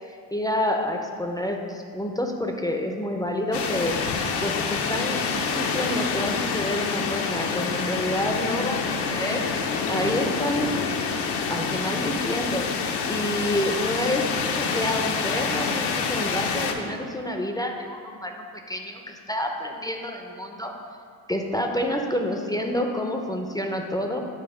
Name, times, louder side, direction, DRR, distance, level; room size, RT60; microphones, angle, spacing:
voice 1, 0.3-4.0 4.4-5.2 5.5-9.4 9.9-10.8 11.5-12.7 13.1-14.3 14.6-20.7 21.3-24.2, left 1 dB, 10° left, 2 dB, 0.5 m, -28 dB
sound 1, 3.5-16.7, left 5 dB, 75° left, 0.7 m, -27 dB
7.9 x 3.3 x 4.8 m, 2.2 s
cardioid pair, 90°, 41 cm